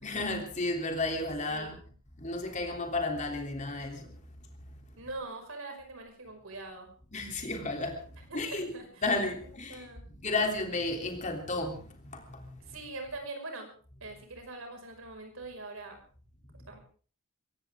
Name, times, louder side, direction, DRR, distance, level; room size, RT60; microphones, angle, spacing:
voice 1, 0.0-1.7 2.2-4.1 7.1-8.0 8.3-8.7 9.0-9.8 10.2-11.8 12.1-12.4, left 2 dB, 35° left, 3.3 m, -32 dB
voice 2, 5.0-6.9 8.3-9.2 9.7-10.0 12.7-13.7 14.0-16.0 16.7-16.8, right 2 dB, 65° right, 5.8 m, -42 dB
22.5 x 17.0 x 3.7 m
head